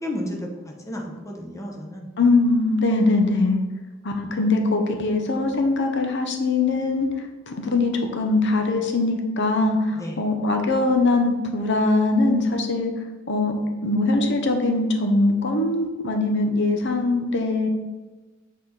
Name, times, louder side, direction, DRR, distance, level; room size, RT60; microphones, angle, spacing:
voice 1, 0.0-2.1 9.9-10.2, left 1 dB, 15° left, 0 dB, 1.0 m, -32 dB
voice 2, 2.2-3.6 4.0-12.9 13.3-13.5 13.8-17.7, left 2 dB, 60° left, 4 dB, 0.9 m, -22 dB
7.4 x 4.2 x 4.0 m, 1.2 s
head